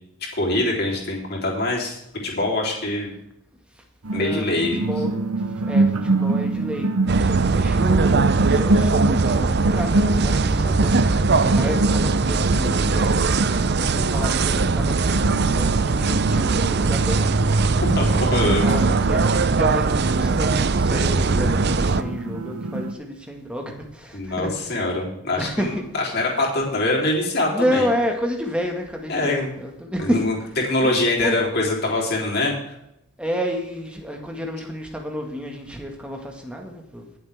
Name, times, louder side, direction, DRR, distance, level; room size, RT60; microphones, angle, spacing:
voice 1, 0.3-3.1 4.1-4.8 17.8-18.6 24.1-25.7 26.1-27.8 29.1-29.5 30.0-30.3 30.6-32.5, left 2 dB, 45° left, -2 dB, 3.6 m, -23 dB
sound 1, 4.0-22.9, right 2 dB, 85° right, 1.1 m, -25 dB
voice 2, 4.1-4.5 4.7-5.2 5.6-11.1 11.4-13.2 13.8-17.3 18.4-19.3 19.5-24.5 25.4-25.8 27.5-30.3 30.8-31.4 33.2-37.0, equal, 5° right, 2 dB, 1.8 m, -30 dB
sound 2, 7.1-22.0, right 4 dB, 50° right, 0.6 m, -20 dB
21.5 x 7.6 x 3.6 m, 0.81 s
head